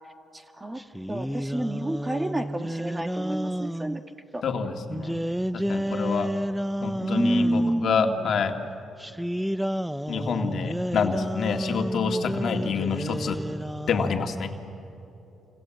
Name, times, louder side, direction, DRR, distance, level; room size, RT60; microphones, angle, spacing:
voice 1, 0.3-0.8 1.1-4.0 4.3-4.4 7.0-8.3, right 1 dB, 20° right, 6 dB, 1.8 m, -28 dB
sound 1, 0.8-4.0 4.9-7.9 9.0-14.2, equal, ahead, 0.6 m, -31 dB
voice 2, 4.4-5.2 5.5-6.3 6.8-8.6 10.1-13.4 13.9-14.5, left 5 dB, 60° left, 4 dB, 2.2 m, -27 dB
29.5 x 26.0 x 7.8 m, 2.8 s
cardioid pair, 90°, 0 cm